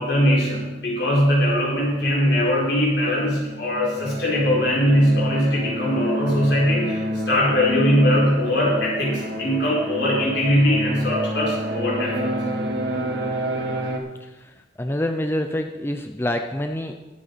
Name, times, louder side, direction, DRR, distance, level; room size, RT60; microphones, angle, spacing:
voice 1, 0.0-12.3, equal, 75° left, -4 dB, 5.2 m, -21 dB
sound 1, 2.8-14.0, equal, 65° right, 2.0 m, -29 dB
voice 2, 14.8-16.9, left 1 dB, 15° left, 5 dB, 0.6 m, -26 dB
22.5 x 8.1 x 4.2 m, 1.1 s
head